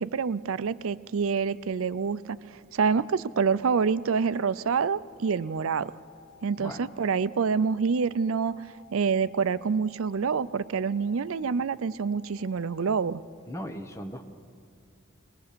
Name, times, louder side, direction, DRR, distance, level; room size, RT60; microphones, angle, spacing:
voice 1, 0.0-5.9 6.4-8.6 8.9-13.2, right 5 dB, 75° right, 16 dB, 0.5 m, -27 dB
sound 1, 2.8-12.8, left 7 dB, 50° right, 5.0 m, -55 dB
voice 2, 13.5-14.3, equal, 15° left, 5 dB, 1.0 m, -38 dB
21.5 x 20.0 x 6.8 m, 2.2 s
head